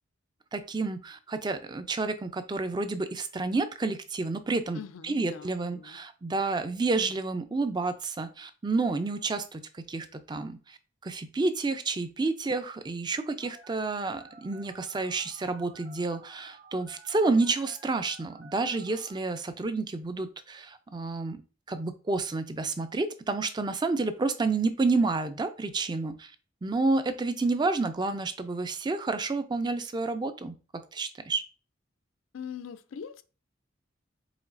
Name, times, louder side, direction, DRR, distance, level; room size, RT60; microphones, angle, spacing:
voice 1, 0.5-10.8 11.0-21.4 21.7-26.3 26.6-31.4, right 3 dB, 20° right, 0.4 m, -30 dB
voice 2, 4.7-6.0 32.3-33.2, left 7 dB, 85° left, 0.4 m, -42 dB
Telephone, 13.4-19.2, right 3 dB, 60° right, 0.9 m, -53 dB
5.0 x 3.9 x 2.6 m
head